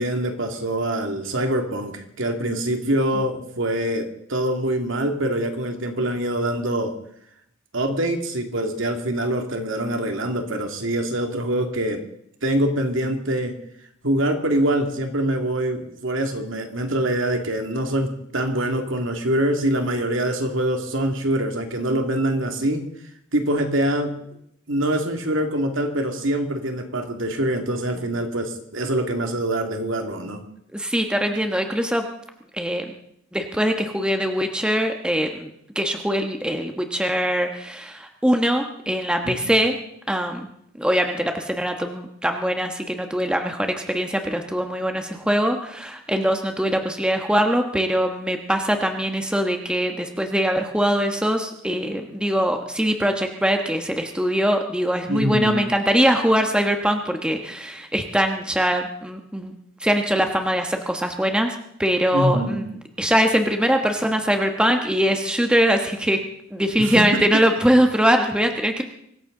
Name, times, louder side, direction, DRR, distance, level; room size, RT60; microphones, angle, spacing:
voice 1, 0.0-6.9 7.7-12.0 12.4-13.6 14.0-22.9 23.3-24.1 24.7-30.4 39.2-39.5 55.1-55.6 62.1-62.6 66.8-67.2, right 1 dB, 70° right, 4 dB, 2.3 m, -24 dB
voice 2, 30.7-32.0 32.5-32.8 33.3-35.5 35.7-39.8 40.1-40.5 40.8-59.5 59.8-62.6 63.0-66.2 66.5-68.8, equal, 5° right, 4 dB, 1.2 m, -22 dB
24.5 x 15.0 x 3.9 m, 0.72 s
head